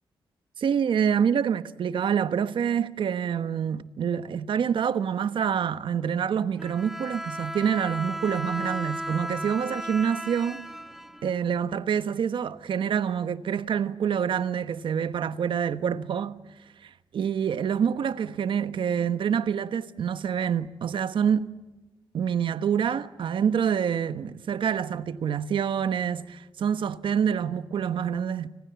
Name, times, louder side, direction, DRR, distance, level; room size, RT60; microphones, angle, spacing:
voice 1, 0.6-10.6 11.2-16.4 16.8-21.5 22.1-28.5, right 8 dB, 75° right, 1.2 m, -26 dB
Bowed string instrument, 6.6-11.6, equal, 5° right, 1.6 m, -35 dB
29.5 x 26.0 x 7.0 m
cardioid pair, 90°, 9 cm